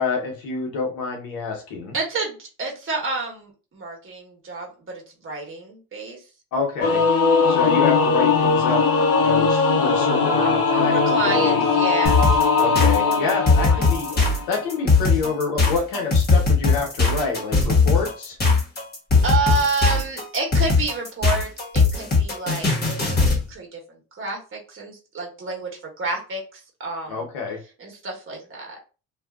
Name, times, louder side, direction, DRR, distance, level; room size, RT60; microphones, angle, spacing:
voice 1, 0.0-1.9 6.5-7.0 7.5-8.8 9.2-11.6 12.6-14.1 14.5-18.4 27.1-27.6, left 4 dB, 90° left, 1 dB, 1.0 m, -27 dB
voice 2, 1.9-6.2 10.9-12.3 13.0-14.5 19.2-27.3 27.8-28.8, right 3 dB, 35° right, 0 dB, 1.3 m, -29 dB
Singing / Musical instrument, 6.8-14.6, left 4 dB, 45° left, 0.7 m, -20 dB
sound 1, 12.1-23.4, left 4 dB, 30° left, 1.3 m, -19 dB
2.6 x 2.4 x 2.4 m, 0.33 s
supercardioid pair, 85°, 34 cm